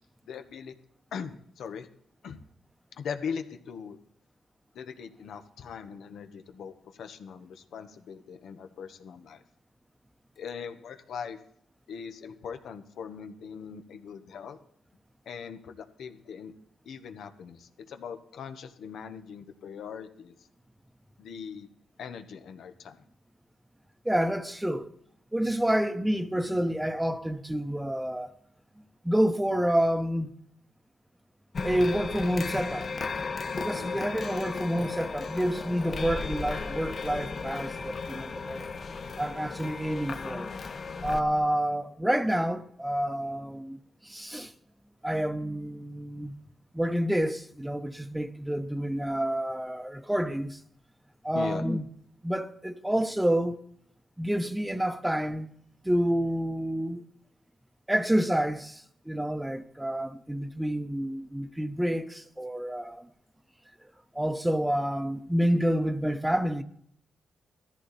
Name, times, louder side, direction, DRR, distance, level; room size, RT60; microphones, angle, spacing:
voice 1, 0.3-0.7 1.1-1.9 2.2-2.4 3.0-4.0 4.7-9.4 10.4-11.4 11.9-14.6 15.2-16.5 16.8-20.4 21.2-21.7 22.0-23.0 33.7-34.0 51.3-51.6, left 6 dB, 75° left, 1.3 m, -40 dB
voice 2, 24.0-24.9 25.3-28.3 29.0-30.3 31.6-32.9 33.5-38.6 39.2-40.5 41.0-44.5 45.0-46.3 46.7-50.6 51.2-51.9 52.2-53.6 54.2-55.5 55.8-57.0 57.9-63.1 64.1-66.6, equal, 5° right, 0.9 m, -28 dB
sound 1, 31.5-41.2, left 4 dB, 50° left, 1.3 m, -35 dB
17.0 x 13.5 x 4.3 m
cardioid pair, 75°, 0 cm